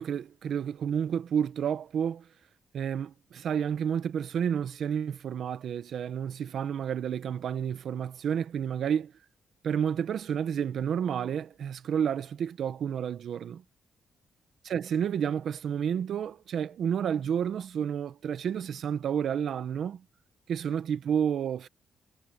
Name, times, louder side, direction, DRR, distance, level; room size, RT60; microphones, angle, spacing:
voice 1, 0.0-2.3 2.7-9.1 9.6-13.6 14.6-20.0 20.5-21.7, right 8 dB, 60° right, 1.1 m, -30 dB
cardioid pair, 150°, 0 cm